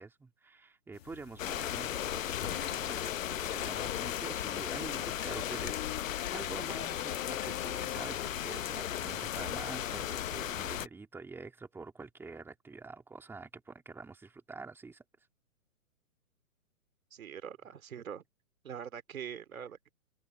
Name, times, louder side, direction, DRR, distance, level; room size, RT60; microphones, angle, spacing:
voice 1, 0.0-15.0, right 4 dB, 5° right, 2.8 m, -47 dB
sound 1, 0.9-6.3, left 13 dB, 45° left, 2.1 m, -48 dB
sound 2, 1.4-10.9, left 11 dB, 65° left, 0.8 m, -36 dB
sound 3, 3.7-8.1, left 19 dB, 20° left, 2.0 m, -45 dB
voice 2, 17.1-18.2 18.6-19.9, right 8 dB, 65° right, 2.6 m, -43 dB
hypercardioid pair, 145°, 44 cm